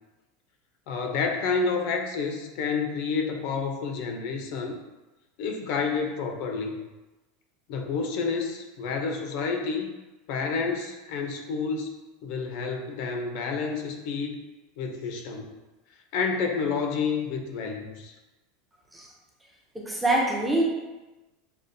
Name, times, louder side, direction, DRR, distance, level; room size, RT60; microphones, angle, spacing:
voice 1, 0.9-4.8 5.4-6.7 7.7-9.9 10.3-11.9 12.2-14.4 14.8-15.5 16.1-18.1, left 5 dB, 50° left, 3 dB, 0.5 m, -29 dB
voice 2, 19.7-20.6, right 1 dB, 5° right, -2 dB, 0.5 m, -24 dB
6.4 x 2.4 x 2.6 m, 1.1 s
supercardioid pair, 170°, 0 cm